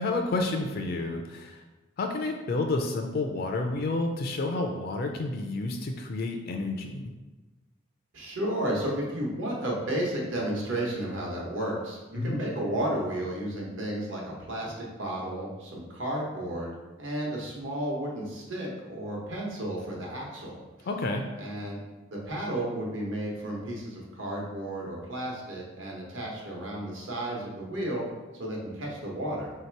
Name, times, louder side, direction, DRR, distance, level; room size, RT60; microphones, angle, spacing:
voice 1, 0.0-1.6 2.0-7.1 12.2-12.4 20.9-21.2, left 2 dB, 50° left, 3 dB, 0.4 m, -30 dB
voice 2, 8.1-16.7 17.0-20.9 21.4-21.8 22.1-28.1 28.4-29.5, right 1 dB, 65° right, -2 dB, 1.0 m, -33 dB
3.3 x 2.8 x 4.5 m, 1.2 s
head